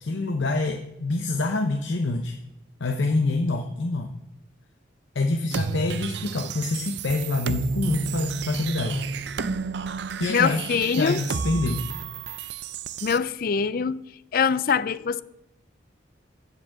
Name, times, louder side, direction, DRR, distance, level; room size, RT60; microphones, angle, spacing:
voice 1, 0.0-2.4 2.8-4.1 5.1-9.0 10.2-10.7 11.0-11.8, left 2 dB, 75° left, 0.8 m, -26 dB
sound 1, 5.5-13.2, right 5 dB, 60° right, 0.5 m, -31 dB
voice 2, 10.3-11.2 13.0-14.0 14.3-15.2, left 6 dB, 50° left, 0.4 m, -23 dB
7.3 x 6.8 x 7.6 m
head